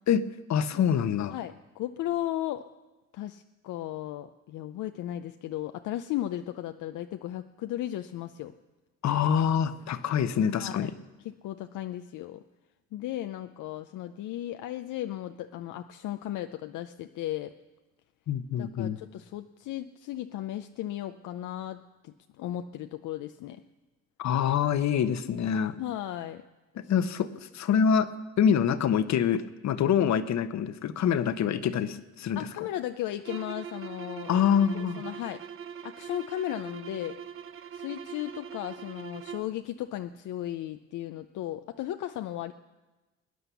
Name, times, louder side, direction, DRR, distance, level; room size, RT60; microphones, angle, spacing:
voice 1, 0.1-1.3 9.0-10.9 18.3-19.0 24.2-25.7 26.8-28.1 28.4-32.5 34.3-35.0, left 8 dB, 65° left, 12 dB, 1.0 m, -26 dB
voice 2, 1.3-2.6 3.1-8.5 10.6-10.9 11.2-12.4 12.9-17.5 18.6-23.6 25.8-26.4 26.7-26.9 32.3-34.3 34.7-35.4 35.8-37.2 37.7-42.5, left 13 dB, 80° left, 8 dB, 0.6 m, -35 dB
sound 1, 33.2-39.6, right 8 dB, 45° right, 0.7 m, -42 dB
21.0 x 9.6 x 7.0 m, 1.1 s
cardioid pair, 90°, 30 cm